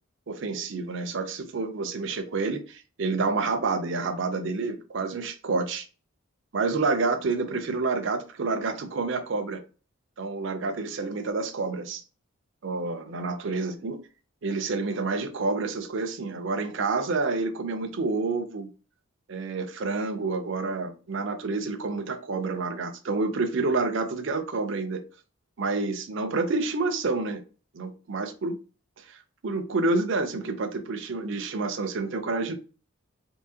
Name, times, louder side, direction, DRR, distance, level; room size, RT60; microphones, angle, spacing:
voice 1, 0.3-5.9 6.5-9.6 10.2-12.0 12.6-14.0 14.4-18.7 19.3-25.0 25.6-27.4 27.7-28.6 29.0-32.5, right 3 dB, 60° right, 0.5 m, -28 dB
3.7 x 2.7 x 2.7 m
head